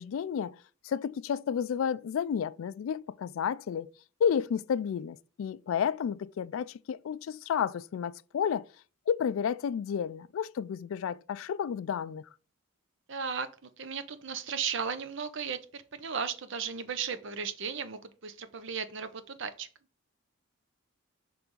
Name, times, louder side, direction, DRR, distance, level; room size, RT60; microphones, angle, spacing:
voice 1, 0.0-3.9 4.2-8.7 9.1-12.3, left 7 dB, 70° left, 0.3 m, -31 dB
voice 2, 13.1-19.7, right 6 dB, 60° right, 0.7 m, -36 dB
6.1 x 3.4 x 5.2 m
head